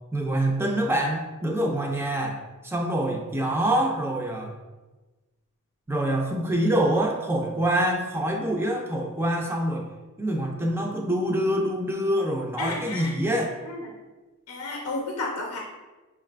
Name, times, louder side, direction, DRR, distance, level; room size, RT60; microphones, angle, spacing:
voice 1, 0.1-4.5 5.9-9.8 10.2-13.5, right 1 dB, 10° right, 1 dB, 0.4 m, -25 dB
voice 2, 12.6-13.1 13.6-13.8 14.5-15.6, left 2 dB, 85° left, -1 dB, 0.5 m, -32 dB
5.6 x 2.4 x 2.2 m, 1.2 s
head